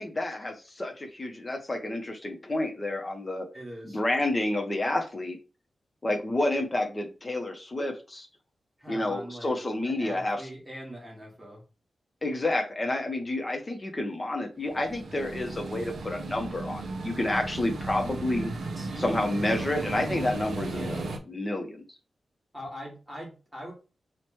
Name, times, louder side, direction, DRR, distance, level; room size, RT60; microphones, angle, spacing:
voice 1, 0.0-3.5 3.9-5.4 6.0-8.3 8.9-10.4 12.2-18.5 19.0-21.8, left 1 dB, 25° left, 3 dB, 0.7 m, -29 dB
voice 2, 3.5-4.0 8.8-9.5 9.8-11.6 18.8-19.2 20.7-21.0 22.5-23.7, equal, 5° right, -4 dB, 1.7 m, -42 dB
sound 1, 14.7-21.2, right 2 dB, 85° right, 0.5 m, -35 dB
4.5 x 2.1 x 3.0 m, 0.33 s
wide cardioid pair, 150°, 0 cm